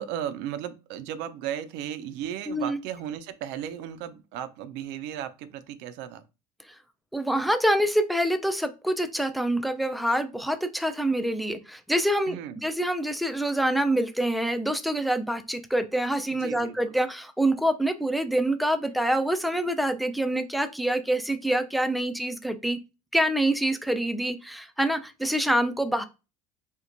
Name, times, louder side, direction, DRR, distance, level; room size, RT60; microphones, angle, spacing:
voice 1, 0.0-6.2 12.3-12.6 16.4-16.8, right 10 dB, 60° right, 0.5 m, -35 dB
voice 2, 2.5-2.8 6.7-6.8 7.1-12.4 12.6-22.8 23.1-26.1, right 1 dB, ahead, 0.4 m, -26 dB
4.4 x 2.1 x 2.5 m
hypercardioid pair, 85°, 20 cm